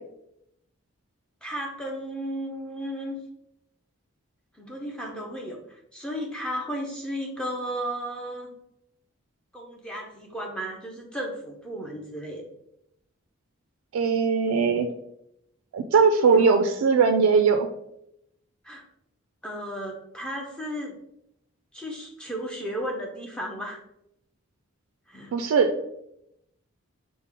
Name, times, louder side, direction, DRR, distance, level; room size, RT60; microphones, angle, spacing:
voice 1, 1.4-3.2 4.5-8.5 9.5-12.4 16.2-16.7 18.6-18.8 19.4-21.0 21.7-23.8 25.1-25.3, equal, 5° left, 0 dB, 0.6 m, -34 dB
voice 2, 13.9-14.9 15.7-17.7 25.3-25.7, right 5 dB, 85° right, 5 dB, 0.3 m, -20 dB
4.8 x 2.1 x 3.6 m, 0.80 s
head